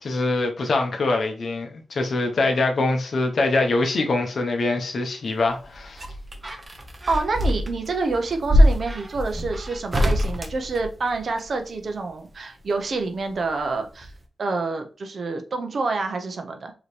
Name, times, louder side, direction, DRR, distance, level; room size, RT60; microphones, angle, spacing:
voice 1, 0.0-6.0, left 2 dB, 60° left, 1.0 m, -24 dB
sound 1, 5.4-11.5 12.9-13.7 14.0-14.1, equal, 25° right, 0.8 m, -24 dB
voice 2, 7.1-14.1 14.4-16.7, right 3 dB, 55° right, 0.8 m, -27 dB
5.0 x 3.0 x 3.3 m
cardioid pair, 90°, 0 cm